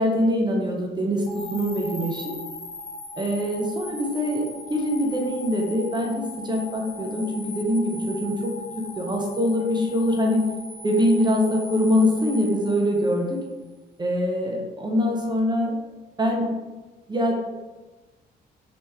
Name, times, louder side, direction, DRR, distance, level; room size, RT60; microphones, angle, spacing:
voice 1, 0.0-2.4 3.2-10.5 10.8-13.4 14.0-15.8 16.2-16.5 17.1-17.3, equal, 20° right, 0 dB, 0.6 m, -24 dB
sound 1, 1.3-13.4, left 2 dB, 80° left, 1.0 m, -39 dB
3.4 x 2.9 x 3.2 m, 1.2 s
cardioid pair, 90°, 20 cm